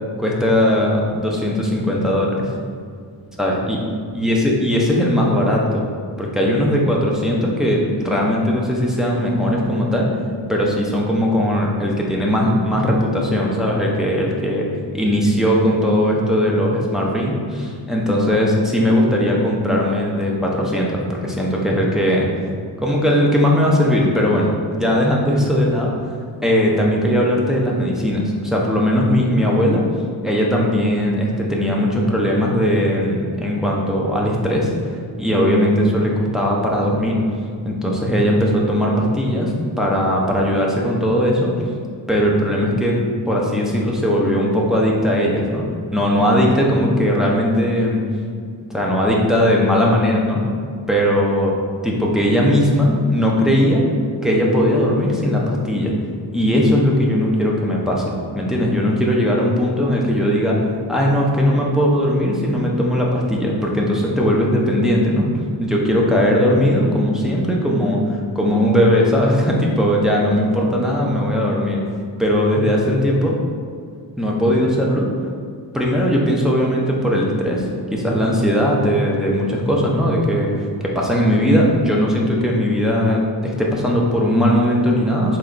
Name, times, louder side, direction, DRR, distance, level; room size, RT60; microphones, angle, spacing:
voice 1, 0.2-2.5 3.4-3.8 4.1-5.9 6.2-10.1 10.5-14.7 14.9-22.3 22.8-26.1 26.4-29.8 30.2-34.7 35.2-37.2 37.6-41.5 42.1-45.6 45.9-48.0 48.7-50.4 50.9-51.5 51.8-53.8 54.2-55.9 56.3-65.3 65.6-71.8 72.2-73.4 74.2-75.1 75.7-85.4, equal, ahead, -4 dB, 0.5 m, -18 dB
4.5 x 3.1 x 3.8 m, 2.1 s
wide cardioid pair, 175°, 46 cm